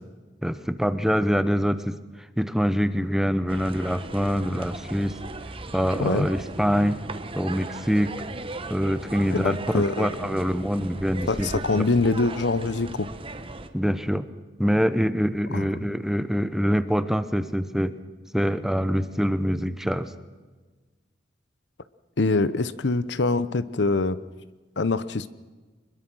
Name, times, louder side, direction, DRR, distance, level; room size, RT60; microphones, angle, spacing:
voice 1, 0.4-2.0 2.4-5.1 5.7-7.0 7.4-8.1 8.7-11.8 13.7-14.3 14.6-17.9 18.3-20.1, equal, ahead, 12 dB, 0.9 m, -25 dB
sound 1, 3.5-13.7, right 2 dB, 30° right, 1.2 m, -37 dB
voice 2, 9.3-10.3 11.3-13.1 15.5-15.8 22.2-24.2 24.8-25.3, left 3 dB, 70° left, 15 dB, 0.8 m, -24 dB
23.5 x 21.5 x 6.2 m, 1.3 s
head